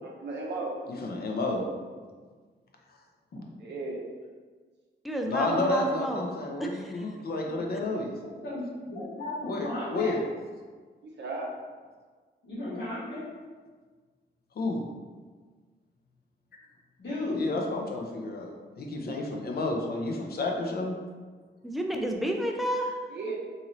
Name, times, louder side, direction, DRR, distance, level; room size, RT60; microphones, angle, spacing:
voice 1, 0.2-0.7 3.6-4.0 5.4-5.8 11.0-11.5 23.1-23.4, right 3 dB, 65° right, -2 dB, 0.8 m, -35 dB
voice 2, 1.0-1.6 2.9-3.0 5.2-8.1 9.4-10.2 14.6-14.8 17.3-21.0, left 2 dB, 55° left, 1 dB, 0.6 m, -31 dB
voice 3, 5.0-6.3 6.6-7.0 21.6-22.9, equal, ahead, 2 dB, 0.3 m, -30 dB
voice 4, 8.4-10.2 12.4-13.2 17.0-17.4, left 2 dB, 75° left, -11 dB, 1.2 m, -34 dB
3.0 x 2.8 x 3.8 m, 1.5 s
wide cardioid pair, 135°, 19 cm